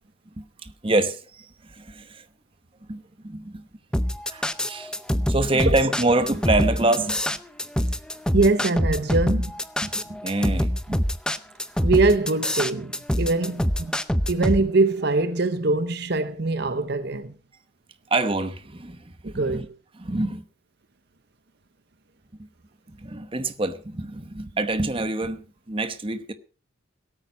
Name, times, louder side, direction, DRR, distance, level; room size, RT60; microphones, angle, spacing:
voice 1, 0.6-2.2 2.9-3.6 4.3-7.2 9.8-11.0 11.8-11.9 18.1-19.7 20.0-20.4 23.0-26.3, right 2 dB, 25° right, 1.0 m, -26 dB
sound 1, 3.9-14.6, equal, 5° left, 0.6 m, -24 dB
voice 2, 8.3-9.5 11.8-13.9 14.3-17.3 19.2-19.7, right 3 dB, 50° right, 0.8 m, -23 dB
17.0 x 8.9 x 5.4 m
head